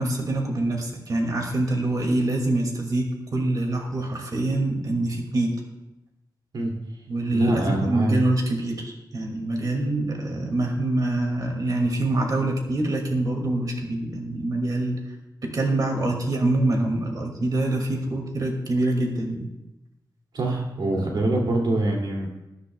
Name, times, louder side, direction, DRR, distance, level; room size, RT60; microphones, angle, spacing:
voice 1, 0.0-3.1 3.3-5.5 7.1-15.0 15.4-19.5 21.0-21.3, right 2 dB, 55° right, 2 dB, 2.3 m, -25 dB
voice 2, 7.3-8.2 20.3-22.4, right 1 dB, 75° right, 0 dB, 2.6 m, -24 dB
21.5 x 9.7 x 2.3 m, 0.95 s
wide cardioid pair, 140°, 8 cm